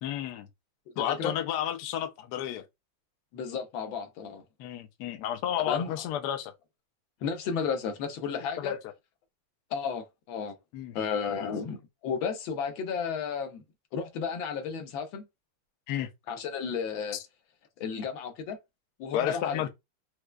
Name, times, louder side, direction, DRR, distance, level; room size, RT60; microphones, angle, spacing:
voice 1, 0.0-0.5 1.0-2.6 4.6-6.5 8.6-8.8 10.7-11.0 15.9-16.1 19.1-19.7, left 11 dB, 75° left, 1.0 m, -31 dB
voice 2, 1.0-1.3 3.3-4.4 5.7-6.0 7.2-8.7 9.7-10.5 10.9-13.6 13.9-15.3 16.3-17.2 17.8-18.6 19.0-19.6, left 6 dB, 90° left, 1.6 m, -33 dB
4.7 x 2.1 x 2.3 m
omnidirectional pair, 2.1 m